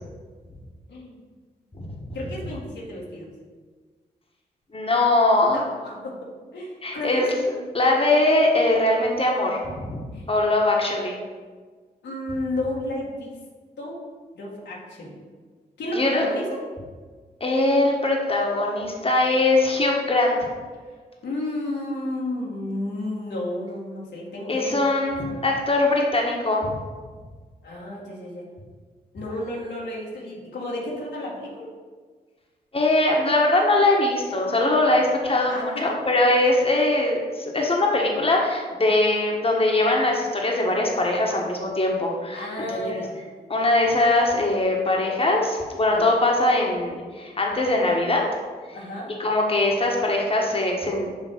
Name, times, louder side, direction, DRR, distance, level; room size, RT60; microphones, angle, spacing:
voice 1, 0.9-1.3 2.1-3.3 5.4-7.3 10.1-10.3 12.0-13.4 13.8-14.0 14.3-15.2 15.8-16.6 20.8-21.0 21.2-24.8 25.3-25.5 27.6-28.4 29.1-31.7 34.9-35.0 35.4-35.9 42.3-43.2 45.9-46.1 48.7-49.1, left 1 dB, 80° left, -4 dB, 1.6 m, -32 dB
voice 2, 4.7-5.6 6.8-7.3 7.7-10.0 10.3-11.2 15.9-16.2 17.4-20.4 24.5-26.7 32.7-43.0 43.5-48.2 49.2-51.1, left 2 dB, 30° left, -1 dB, 1.4 m, -21 dB
6.1 x 3.2 x 5.8 m, 1.5 s
supercardioid pair, 45°, 18 cm